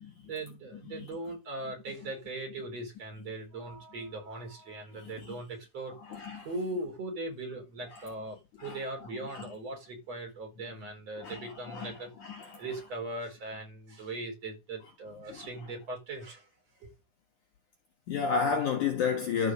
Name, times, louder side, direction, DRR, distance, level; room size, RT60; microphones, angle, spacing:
voice 1, 0.3-6.0 6.4-12.1 12.6-16.5 16.8-16.9, right 2 dB, 40° right, 5.5 m, -39 dB
voice 2, 5.0-5.4 6.1-6.5 7.9-8.0 8.6-9.5 11.2-12.6 15.3-15.5 18.1-19.5, left 6 dB, 60° left, 2.5 m, -33 dB
13.0 x 5.4 x 6.6 m
omnidirectional pair, 4.7 m